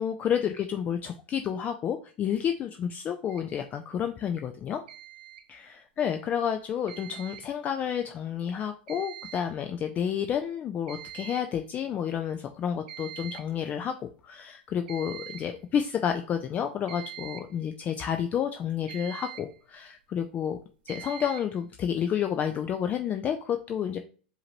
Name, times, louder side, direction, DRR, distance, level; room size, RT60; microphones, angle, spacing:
voice 1, 0.0-4.8 5.5-20.6 20.9-24.0, left 8 dB, 30° left, 7 dB, 0.4 m, -30 dB
sound 1, 3.3-3.5 4.9-5.5 6.9-7.5 8.9-9.5 9.8-9.9 10.4-10.5 10.9-11.5 12.9-13.5 14.9-15.6 16.9-17.6 18.9-19.6 20.9-21.6, right 12 dB, 70° right, 0.6 m, -43 dB
4.8 x 2.7 x 3.0 m, 0.39 s
hypercardioid pair, 110°, 5 cm